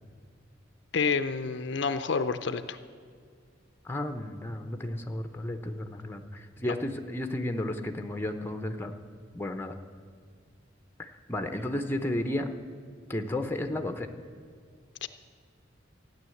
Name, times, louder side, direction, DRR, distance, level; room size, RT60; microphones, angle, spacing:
voice 1, 0.9-2.8 6.6-6.7 15.0-15.1, left 5 dB, 65° left, 11 dB, 0.5 m, -29 dB
voice 2, 3.8-9.0 9.3-9.7 11.0-12.5 13.1-14.1, left 1 dB, 10° left, 7 dB, 0.8 m, -33 dB
14.0 x 9.8 x 7.8 m, 2.1 s
head